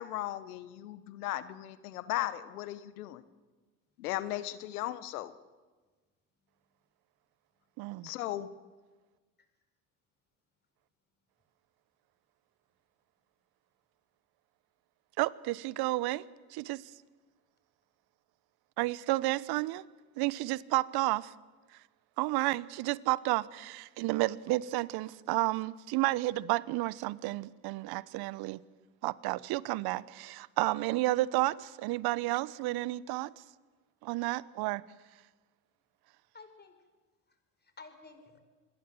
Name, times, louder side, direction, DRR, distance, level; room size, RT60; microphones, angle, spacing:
voice 1, 0.0-3.2 4.0-5.3 8.0-8.5, left 14 dB, 80° left, 1.3 m, -36 dB
voice 2, 7.8-8.1 15.2-16.2 16.5-16.8 18.8-19.8 20.2-21.3 22.2-28.6 29.0-33.3 34.0-34.8, right 19 dB, 60° right, 1.0 m, -31 dB
voice 3, 36.3-36.8 37.3-38.4, left 4 dB, 20° left, 5.3 m, -54 dB
27.5 x 21.5 x 7.8 m
hypercardioid pair, 75°, 44 cm